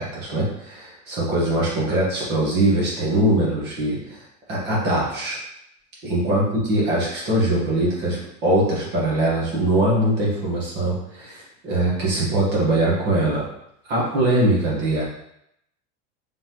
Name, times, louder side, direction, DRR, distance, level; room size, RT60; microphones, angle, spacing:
voice 1, 0.0-5.4 6.0-13.4 13.9-15.0, right 1 dB, 25° right, -5 dB, 1.1 m, -22 dB
3.9 x 3.5 x 2.8 m, 0.78 s
supercardioid pair, 175°, 38 cm